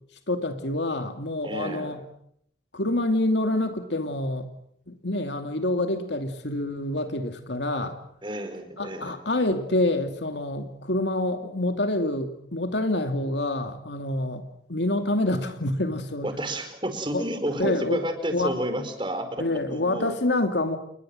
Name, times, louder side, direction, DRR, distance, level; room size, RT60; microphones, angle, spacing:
voice 1, 0.3-2.0 2.7-4.5 4.9-8.0 8.8-14.4 14.7-16.3 17.1-17.2 17.6-18.5 19.4-20.8, left 1 dB, 70° left, 6 dB, 2.5 m, -27 dB
voice 2, 1.4-1.9 8.2-9.1 16.2-19.4 19.7-20.2, right 1 dB, 25° right, 7 dB, 4.9 m, -31 dB
29.0 x 22.0 x 7.7 m, 0.71 s
head